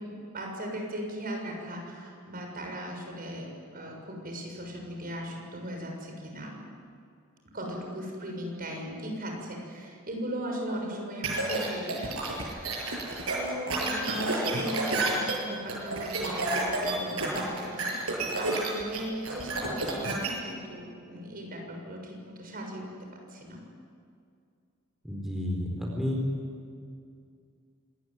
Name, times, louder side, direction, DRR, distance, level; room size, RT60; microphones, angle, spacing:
voice 1, 0.0-6.5 7.5-12.8 13.3-22.9 23.3-23.6, equal, 45° right, 1 dB, 6.7 m, -38 dB
sound 1, 11.2-20.3, right 2 dB, 80° right, 8.0 m, -30 dB
voice 2, 25.0-26.2, left 1 dB, ahead, -2 dB, 4.5 m, -31 dB
26.5 x 21.0 x 9.7 m, 2.3 s
head